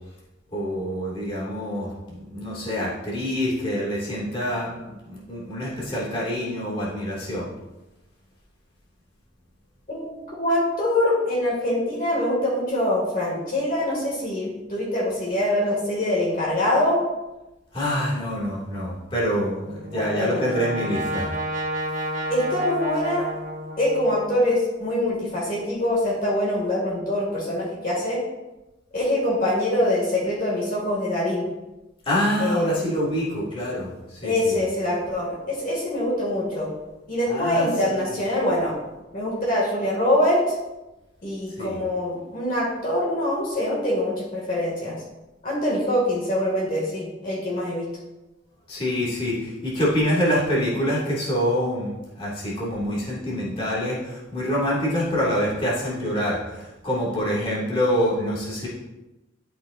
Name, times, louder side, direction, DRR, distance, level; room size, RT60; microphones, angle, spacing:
voice 1, 0.5-7.5 17.7-21.3 32.1-34.6 37.3-38.2 41.6-41.8 48.7-51.9 52.2-58.7, equal, 30° left, -6 dB, 2.1 m, -26 dB
voice 2, 10.4-17.0 19.9-20.6 22.3-23.3 23.8-28.2 28.9-31.5 32.4-32.8 34.2-36.7 37.1-38.8 39.1-40.6 41.2-45.0 45.4-47.9, left 1 dB, 45° left, -4 dB, 2.1 m, -24 dB
Brass instrument, 19.6-24.4, right 1 dB, 40° right, 1.2 m, -31 dB
12.0 x 5.6 x 2.5 m, 1.0 s
head